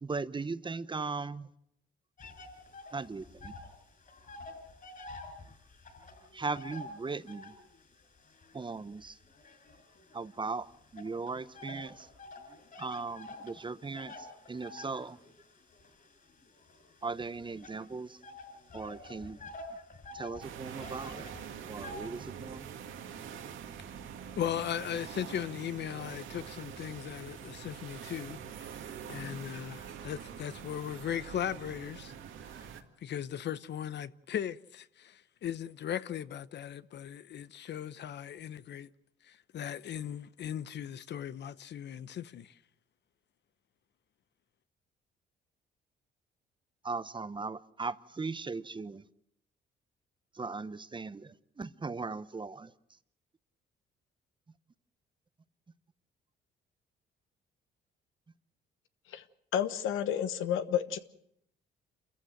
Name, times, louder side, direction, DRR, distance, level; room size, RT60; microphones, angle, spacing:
voice 1, 0.0-1.5 2.9-3.5 6.3-7.5 8.5-9.2 10.1-10.7 10.9-12.1 12.8-14.1 14.5-15.2 17.0-18.2 18.7-19.4 20.1-21.3 21.7-22.7 46.8-49.0 50.4-52.7, right 4 dB, 25° right, 0.9 m, -38 dB
sound 1, 2.2-3.8 4.0-7.7 8.3-10.3 11.0-22.0, left 2 dB, 40° left, 6.7 m, -48 dB
sound 2, 20.4-32.8, right 8 dB, 75° right, 2.1 m, -45 dB
voice 2, 24.4-28.4 28.7-32.1 33.0-38.9 39.2-42.6, left 9 dB, 60° left, 0.8 m, -38 dB
voice 3, 59.5-61.0, left 9 dB, 90° left, 1.2 m, -30 dB
28.0 x 14.5 x 7.7 m
cardioid pair, 90°, 20 cm